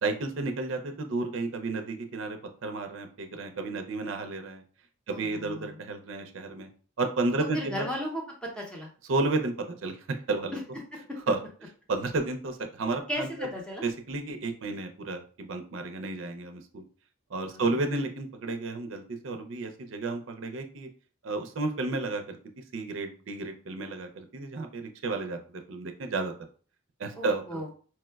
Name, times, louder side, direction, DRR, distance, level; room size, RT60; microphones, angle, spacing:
voice 1, 0.0-4.6 5.1-6.7 7.0-7.9 9.1-10.0 10.3-10.6 11.3-11.4 11.9-13.5 13.8-16.8 17.3-20.9 21.2-22.4 22.7-26.3 27.0-27.6, right 3 dB, 65° right, 6 dB, 0.5 m, -32 dB
voice 2, 5.1-5.8 7.5-8.9 10.5-10.6 10.9-11.0 13.1-13.8 17.5-17.6 27.2-27.7, equal, 5° left, -1 dB, 0.6 m, -35 dB
4.4 x 2.1 x 2.2 m, 0.41 s
head